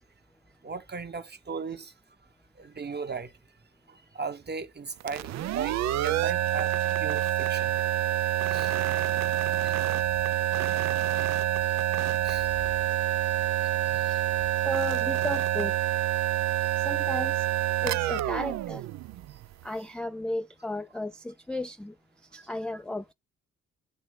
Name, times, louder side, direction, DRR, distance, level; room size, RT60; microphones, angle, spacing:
voice 1, 0.6-1.9 2.5-3.4 3.9-6.7 7.0-7.8 8.5-8.8 9.6-9.7 12.2-12.6 13.6-14.3 16.6-16.8 22.3-22.5, right 5 dB, 30° right, 1.2 m, -38 dB
sound 1, 5.0-19.6, right 13 dB, 55° right, 0.5 m, -27 dB
voice 2, 14.6-15.8 16.8-17.5 17.8-18.8 19.6-21.9 22.3-23.1, left 1 dB, 5° left, 0.4 m, -34 dB
8.0 x 2.9 x 5.0 m
hypercardioid pair, 40°, 33 cm